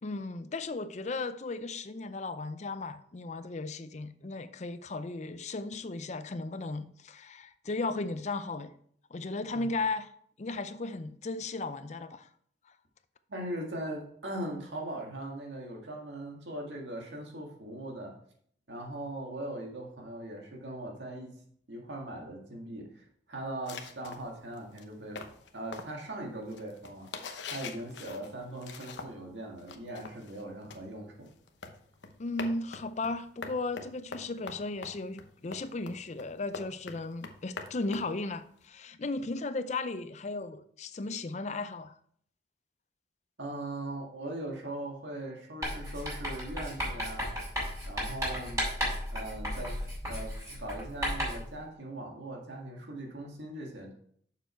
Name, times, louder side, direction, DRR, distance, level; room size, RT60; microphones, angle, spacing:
voice 1, 0.0-8.7 9.1-10.1 10.4-12.3 12.7-12.8 32.2-42.0, left 3 dB, 40° left, 12 dB, 0.5 m, -36 dB
voice 2, 13.3-18.1 18.7-21.3 21.7-25.2 25.5-27.1 27.5-31.3 43.4-47.3 47.9-48.7 49.1-49.8 50.1-53.9, right 1 dB, 85° right, 1 dB, 2.0 m, -40 dB
sound 1, 23.7-29.3 29.6-38.6, left 4 dB, 85° left, 0.9 m, -44 dB
Writing, 45.6-51.5, equal, 15° right, 4.2 m, -34 dB
6.9 x 6.9 x 4.4 m, 0.62 s
head